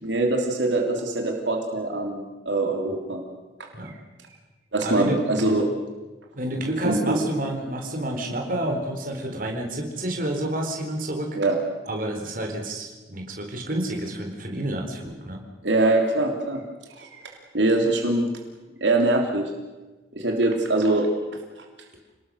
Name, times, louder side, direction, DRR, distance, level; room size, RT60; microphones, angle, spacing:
voice 1, 0.0-3.2 4.7-5.7 6.8-7.2 11.3-11.6 15.6-16.6 17.0-18.3 18.8-19.5 20.1-21.1, right 2 dB, 80° right, 2 dB, 3.2 m, -23 dB
voice 2, 4.8-5.2 6.3-11.4 11.9-15.4, right 1 dB, 50° right, 2 dB, 4.2 m, -29 dB
29.0 x 19.5 x 6.5 m, 1.2 s
head